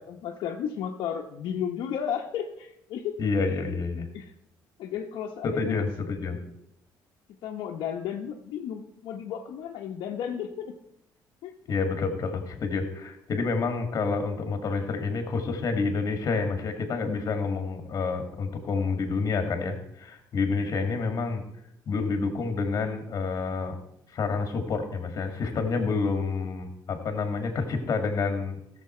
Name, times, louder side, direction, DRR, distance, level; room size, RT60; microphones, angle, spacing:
voice 1, 0.0-3.1 3.4-3.5 4.1-4.3 4.8-5.9 7.4-10.7 11.4-11.5 20.8-20.9, left 8 dB, 75° left, 0 dB, 1.0 m, -33 dB
voice 2, 3.2-4.1 5.4-6.4 11.7-21.4 21.9-23.8 24.1-28.6, left 4 dB, 45° left, 6 dB, 2.0 m, -28 dB
16.0 x 7.0 x 4.4 m, 0.77 s
cardioid pair, 130°, 8 cm